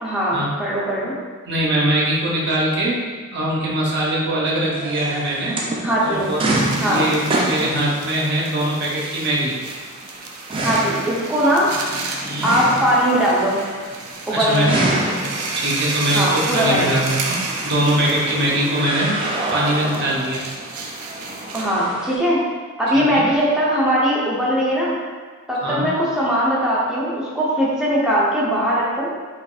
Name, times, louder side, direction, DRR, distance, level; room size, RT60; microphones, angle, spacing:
voice 1, 0.0-1.2 5.8-6.3 6.8-7.0 10.6-11.7 12.4-13.6 14.3-15.1 16.1-17.0 21.5-22.4 22.8-24.9 25.5-29.1, equal, 5° right, -7 dB, 0.8 m, -20 dB
voice 2, 1.5-3.0 3.3-5.6 6.0-9.6 12.2-12.5 14.3-14.7 15.5-19.2 19.5-20.4 22.9-23.2 25.6-25.9, right 1 dB, 50° right, -5 dB, 0.9 m, -22 dB
sound 1, 4.7-22.2, right 1 dB, 25° right, 0.4 m, -28 dB
sound 2, 6.1-21.8, right 3 dB, 85° right, 0.5 m, -33 dB
5.0 x 2.6 x 2.4 m, 1.4 s
head